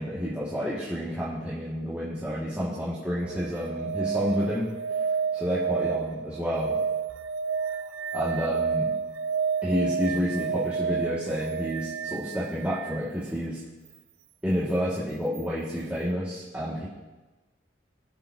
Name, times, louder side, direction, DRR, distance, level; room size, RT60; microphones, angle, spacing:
voice 1, 0.0-4.7 5.3-6.8 8.1-8.9 9.6-13.6 14.4-16.9, equal, 10° right, -10 dB, 2.0 m, -29 dB
sound 1, 3.2-13.0 15.3-15.4, right 6 dB, 90° right, 0.5 m, -30 dB
21.5 x 7.3 x 2.8 m, 1.1 s
head